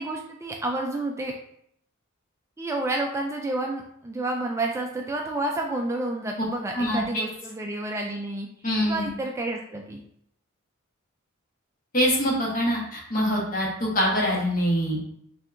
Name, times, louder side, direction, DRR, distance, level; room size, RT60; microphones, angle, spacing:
voice 1, 0.0-1.3 2.6-8.5 8.8-10.0, right 2 dB, 15° right, 1 dB, 0.3 m, -30 dB
voice 2, 6.7-7.2 8.6-9.1 11.9-15.0, equal, 40° left, -3 dB, 1.2 m, -24 dB
5.5 x 2.7 x 2.5 m, 0.70 s
head